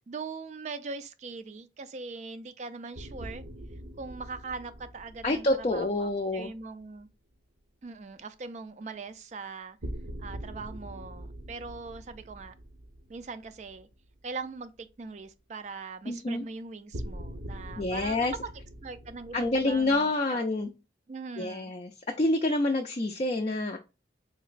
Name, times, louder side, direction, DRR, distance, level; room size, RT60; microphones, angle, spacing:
voice 1, 0.1-3.4 4.0-7.1 7.8-9.8 10.2-12.5 13.1-13.9 14.2-18.5 18.8-20.4 21.1-21.7, right 4 dB, 40° right, 0.3 m, -41 dB
sound 1, 2.9-7.1 9.8-14.2 14.5-14.6 16.9-20.0, equal, 65° right, 0.7 m, -43 dB
voice 2, 5.2-6.5 16.1-16.4 17.8-18.3 19.3-20.7 21.4-21.9 22.2-23.8, left 2 dB, 35° left, 0.4 m, -27 dB
3.9 x 3.0 x 2.4 m
head